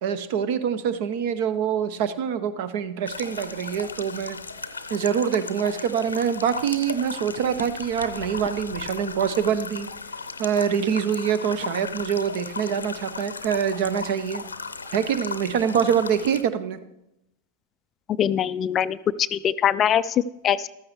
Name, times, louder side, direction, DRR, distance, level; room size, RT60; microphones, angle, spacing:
voice 1, 0.0-4.4 4.9-9.9 10.4-14.4 14.9-16.8, right 8 dB, 50° right, 13 dB, 0.9 m, -25 dB
sound 1, 3.1-16.4, left 4 dB, 75° left, 0.7 m, -36 dB
voice 2, 18.2-20.7, left 9 dB, 30° left, 16 dB, 0.4 m, -23 dB
14.5 x 13.0 x 3.2 m, 0.85 s
figure-of-eight pair, 90°, 0 cm